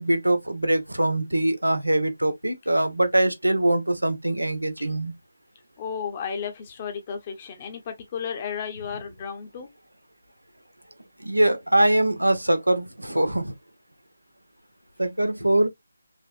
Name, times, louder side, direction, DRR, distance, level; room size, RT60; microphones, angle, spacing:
voice 1, 0.0-5.1 11.2-13.5 15.0-15.7, right 1 dB, 80° right, 1.2 m, -23 dB
voice 2, 5.8-9.7 15.4-15.5, left 7 dB, 25° left, 1.2 m, -33 dB
5.3 x 3.4 x 2.5 m
figure-of-eight pair, 155°, 0 cm